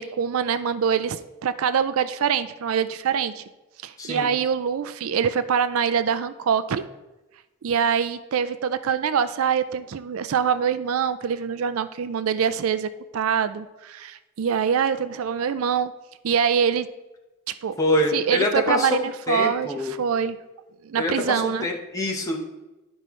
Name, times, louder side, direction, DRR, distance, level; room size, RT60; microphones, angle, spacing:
voice 1, 0.0-3.4 3.8-6.8 7.6-15.9 16.2-16.9 17.5-17.8 18.1-20.4 20.8-21.7, right 7 dB, 75° right, 13 dB, 0.4 m, -24 dB
voice 2, 4.0-4.3 17.8-18.9 19.3-19.9 21.0-22.5, left 1 dB, 15° left, 0 dB, 1.0 m, -25 dB
12.0 x 5.4 x 3.1 m, 1.0 s
head